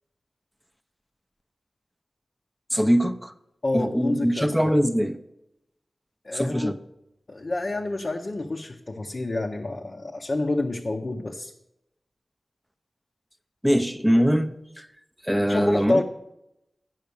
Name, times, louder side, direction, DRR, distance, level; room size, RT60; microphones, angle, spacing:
voice 1, 2.7-3.3 3.7-5.2 6.3-6.8 13.6-14.9 15.2-16.0, equal, ahead, 0.6 m, -22 dB
voice 2, 3.6-4.7 6.2-6.7 7.3-11.5 15.5-16.0, left 2 dB, 45° left, 0.7 m, -28 dB
9.3 x 5.7 x 6.9 m
wide cardioid pair, 100°, 0 cm